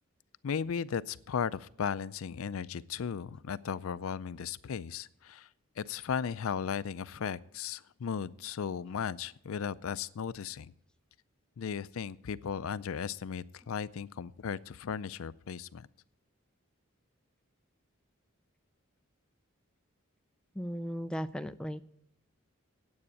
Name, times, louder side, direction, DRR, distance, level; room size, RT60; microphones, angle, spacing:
voice 1, 0.4-5.5 5.8-10.7 11.6-15.9, left 7 dB, 80° left, 18 dB, 0.4 m, -36 dB
voice 2, 20.5-21.8, equal, 5° left, 10 dB, 0.4 m, -36 dB
9.5 x 8.6 x 8.4 m, 0.72 s
head